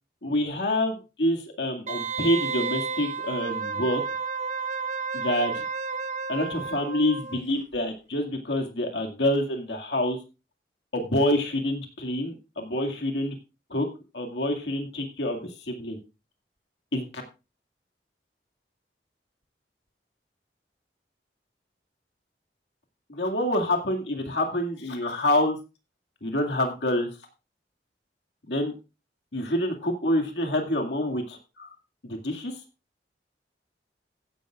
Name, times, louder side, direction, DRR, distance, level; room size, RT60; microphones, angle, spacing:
voice 1, 0.2-4.0 5.1-5.6 6.3-10.2 10.9-13.3 13.7-13.9 14.1-16.0 16.9-17.2 23.1-25.6 26.2-27.1 28.5-28.7 29.3-31.7 32.0-32.6, left 1 dB, 85° left, 2 dB, 2.1 m, -27 dB
Wind instrument woodwind instrument, 1.9-7.4 7.7-7.8, right 5 dB, 40° right, 0.7 m, -32 dB
15.5 x 11.0 x 2.4 m, 0.30 s
head